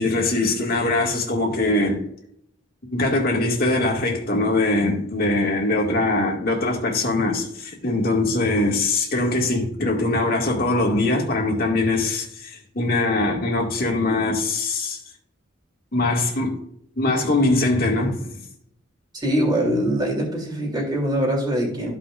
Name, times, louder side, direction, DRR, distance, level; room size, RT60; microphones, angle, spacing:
voice 1, 0.0-2.0 2.9-15.0 15.9-16.6 17.0-18.4, left 2 dB, 50° left, 2.0 m, -22 dB
voice 2, 19.1-22.0, right 1 dB, 20° right, 3.0 m, -23 dB
14.0 x 5.5 x 2.5 m
head